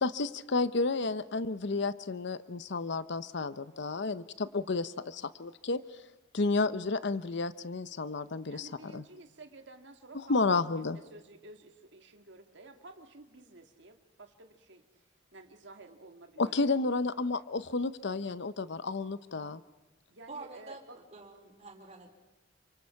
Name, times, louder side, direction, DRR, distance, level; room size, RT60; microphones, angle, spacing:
voice 1, 0.0-5.8 6.3-9.0 10.3-11.0 16.4-19.6, left 3 dB, 65° left, 14 dB, 0.8 m, -31 dB
voice 2, 8.5-15.0 15.3-16.9 20.1-21.0, right 2 dB, 65° right, 5 dB, 2.0 m, -52 dB
voice 3, 20.3-22.1, right 3 dB, 35° right, -1 dB, 4.4 m, -47 dB
28.5 x 26.0 x 5.9 m, 1.1 s
head